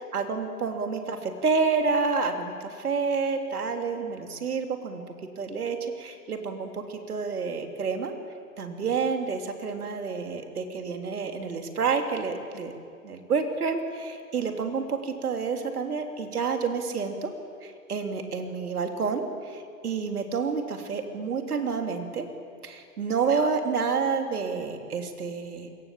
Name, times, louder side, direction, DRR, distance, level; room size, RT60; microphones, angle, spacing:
voice 1, 0.1-5.0 5.4-8.1 8.6-12.7 13.0-17.3 17.6-22.3 22.6-25.7, right 5 dB, 70° right, 5 dB, 3.4 m, -29 dB
27.5 x 22.0 x 7.6 m, 2.3 s
hypercardioid pair, 135°, 47 cm